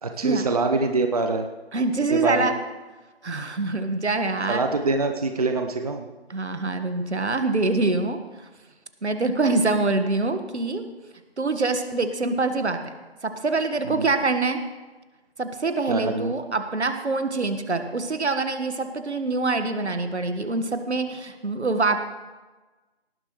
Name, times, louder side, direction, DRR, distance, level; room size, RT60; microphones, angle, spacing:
voice 1, 0.0-1.4 2.1-2.5 4.5-6.1 13.8-14.1 15.9-16.3, right 3 dB, 35° right, 5 dB, 0.7 m, -25 dB
voice 2, 1.7-2.5 3.2-4.6 6.3-8.5 9.0-10.8 11.4-12.9 13.2-14.6 15.4-22.0, right 3 dB, 80° right, 8 dB, 1.6 m, -25 dB
18.0 x 11.5 x 3.2 m, 1.2 s
figure-of-eight pair, 165°, 33 cm